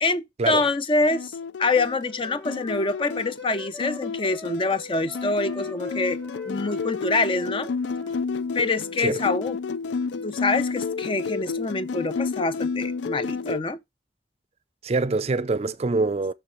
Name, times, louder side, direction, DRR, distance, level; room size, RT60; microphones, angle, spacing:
voice 1, 0.0-6.2 6.5-7.7 8.5-9.6 10.2-13.8, left 3 dB, 30° left, 0.5 m, -25 dB
sound 1, 1.1-13.6, left 4 dB, 85° left, 0.4 m, -31 dB
Wind instrument woodwind instrument, 1.8-8.2, left 3 dB, 5° left, 1.2 m, -44 dB
voice 2, 14.8-16.3, right 3 dB, 35° right, 0.4 m, -24 dB
6.8 x 6.2 x 3.1 m
head